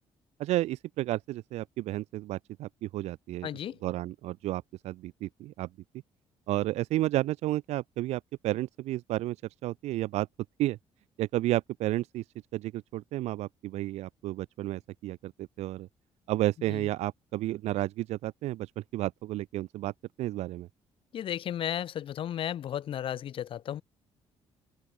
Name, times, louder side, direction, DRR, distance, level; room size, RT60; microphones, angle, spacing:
voice 1, 0.4-3.5 3.8-5.7 6.5-9.4 9.6-10.3 10.6-10.8 11.2-12.2 12.5-15.9 16.3-19.9 20.2-20.7, right 16 dB, 90° right, 0.9 m, -32 dB
voice 2, 3.4-3.8 16.7-16.8 21.1-23.8, left 10 dB, 55° left, 0.7 m, -34 dB
open air
cardioid pair, 125°, 11 cm